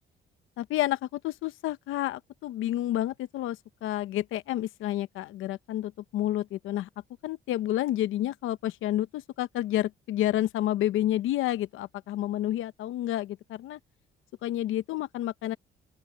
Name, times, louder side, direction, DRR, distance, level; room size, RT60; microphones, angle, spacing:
voice 1, 0.6-6.9 7.2-13.8 14.4-15.6, left 13 dB, 85° left, 0.9 m, -30 dB
open air
cardioid pair, 90°, 20 cm